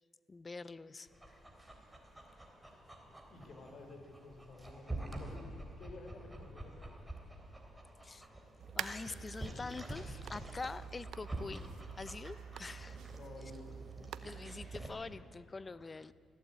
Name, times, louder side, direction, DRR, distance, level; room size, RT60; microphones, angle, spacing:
voice 1, 0.3-1.1 8.0-8.3 8.7-11.7 12.0-13.2 14.2-16.1, left 3 dB, 30° left, 16 dB, 0.7 m, -45 dB
Dog, 1.1-14.9, right 1 dB, 5° right, 3.4 m, -48 dB
voice 2, 3.3-5.5 5.8-6.9 13.1-13.7, left 3 dB, 50° left, 4 dB, 4.1 m, -52 dB
sound 1, 8.6-14.8, right 9 dB, 75° right, 0.8 m, -47 dB
20.5 x 15.0 x 8.5 m, 2.7 s
cardioid pair, 90°, 0 cm